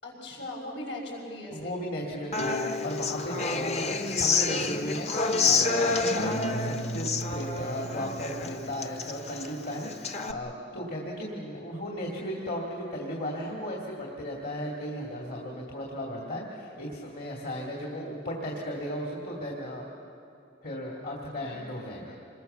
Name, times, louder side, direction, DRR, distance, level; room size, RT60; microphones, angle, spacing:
voice 1, 0.0-1.8 21.3-21.6, left 1 dB, 80° left, -3 dB, 6.3 m, -39 dB
voice 2, 1.5-19.8 20.6-22.2, equal, 55° left, -2 dB, 2.5 m, -35 dB
Human voice / Acoustic guitar, 2.3-10.3, left 3 dB, 35° left, 1.0 m, -28 dB
26.5 x 21.0 x 6.9 m, 2.7 s
head